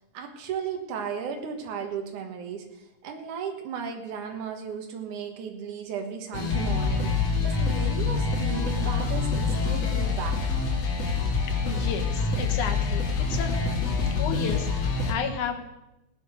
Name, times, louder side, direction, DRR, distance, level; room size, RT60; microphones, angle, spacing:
voice 1, 0.1-10.5, right 6 dB, 80° right, 4 dB, 2.9 m, -35 dB
sound 1, 6.3-15.1, left 4 dB, 55° left, 3.3 m, -26 dB
voice 2, 11.6-13.5 14.2-15.7, left 7 dB, 75° left, 6 dB, 2.8 m, -33 dB
17.0 x 9.4 x 6.4 m, 0.93 s
omnidirectional pair, 3.5 m